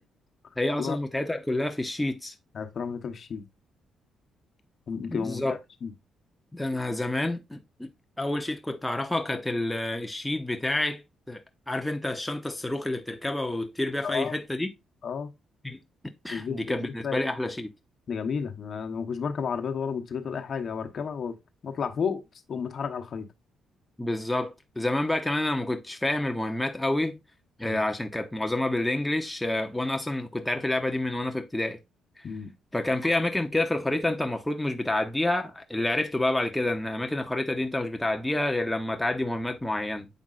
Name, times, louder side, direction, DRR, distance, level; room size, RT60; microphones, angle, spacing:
voice 1, 0.6-2.3 5.1-5.6 6.5-7.9 8.2-11.0 11.3-11.4 11.7-14.7 15.6-15.8 16.2-17.7 24.0-27.2 27.6-31.8 32.2-32.3 32.7-40.1, left 1 dB, 5° left, 0.7 m, -28 dB
voice 2, 2.5-3.4 4.9-5.9 14.0-14.4 15.0-15.3 16.3-17.2 18.1-21.4 21.6-22.2 22.5-23.3 27.6-27.8 32.2-32.5, left 6 dB, 50° left, 1.0 m, -32 dB
7.4 x 5.1 x 2.5 m
cardioid pair, 90°, 0 cm